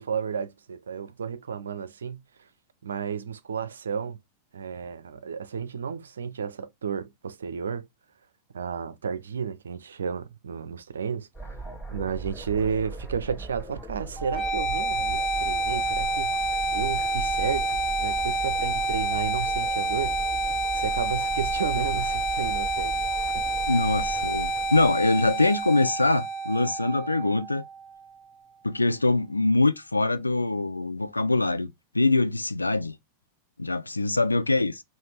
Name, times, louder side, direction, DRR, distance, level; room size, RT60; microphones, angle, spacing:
voice 1, 0.0-2.2 2.8-4.2 4.5-7.9 8.5-11.3 11.9-20.2 20.7-23.0 23.3-23.4, right 6 dB, 70° right, 0.5 m, -32 dB
sound 1, 11.3-25.6, right 3 dB, 10° left, 1.3 m, -39 dB
sound 2, 14.2-28.1, right 2 dB, 25° left, 1.1 m, -28 dB
voice 2, 23.7-27.6 28.6-32.9 33.6-34.8, left 2 dB, 80° left, 0.5 m, -24 dB
5.7 x 2.6 x 3.3 m
figure-of-eight pair, 90°, 0 cm